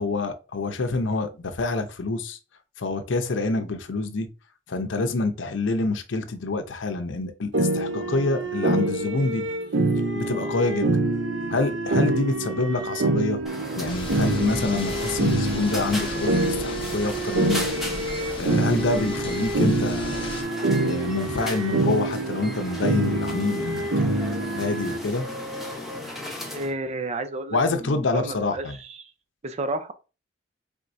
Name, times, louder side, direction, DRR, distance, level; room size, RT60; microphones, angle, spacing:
voice 1, 0.0-2.4 2.8-4.3 4.7-9.5 10.1-10.9 11.5-13.4 13.8-17.7 18.4-20.3 20.8-25.3 27.5-28.8, left 3 dB, 80° left, 0.7 m, -27 dB
sound 1, 7.5-25.0, right 2 dB, 75° right, 0.7 m, -26 dB
sound 2, 13.5-26.7, left 1 dB, ahead, 1.0 m, -36 dB
sound 3, 13.9-20.4, left 2 dB, 30° left, 0.8 m, -37 dB
voice 2, 26.5-29.1 29.4-29.9, right 2 dB, 35° right, 0.5 m, -32 dB
4.4 x 3.5 x 2.6 m
head